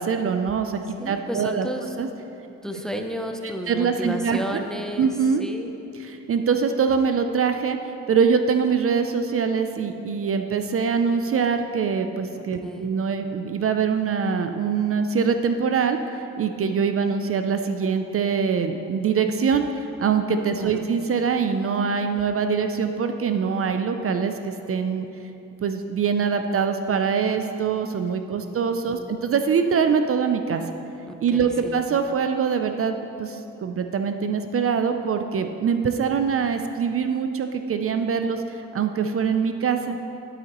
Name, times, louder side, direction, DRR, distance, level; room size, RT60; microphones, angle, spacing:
voice 1, 0.0-1.7 2.0-2.1 3.7-4.6 5.0-5.4 6.0-25.1 25.6-30.6 31.2-40.0, right 6 dB, 45° right, 7 dB, 0.4 m, -24 dB
voice 2, 1.0-2.0 2.6-5.1 5.4-5.7 12.6-12.9 20.6-20.9 28.3-28.6 28.9-29.2 31.1-31.8, equal, ahead, 4 dB, 0.5 m, -32 dB
11.0 x 8.8 x 3.0 m, 2.9 s
cardioid pair, 110°, 31 cm